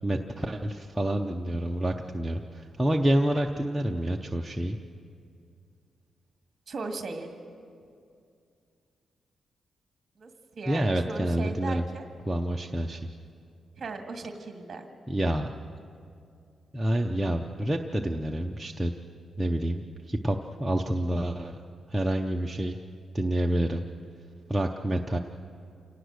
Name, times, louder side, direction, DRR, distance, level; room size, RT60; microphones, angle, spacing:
voice 1, 0.0-4.8 10.7-11.8 12.3-13.1 15.1-15.5 16.7-18.9 19.4-21.6 21.9-22.8 23.1-23.9 24.5-25.2, right 1 dB, 10° right, 1 dB, 0.6 m, -28 dB
voice 2, 6.7-7.3 10.2-12.1 13.8-14.9, right 3 dB, 35° right, 4 dB, 2.0 m, -37 dB
28.0 x 18.5 x 6.4 m, 2.4 s
wide cardioid pair, 175°, 0 cm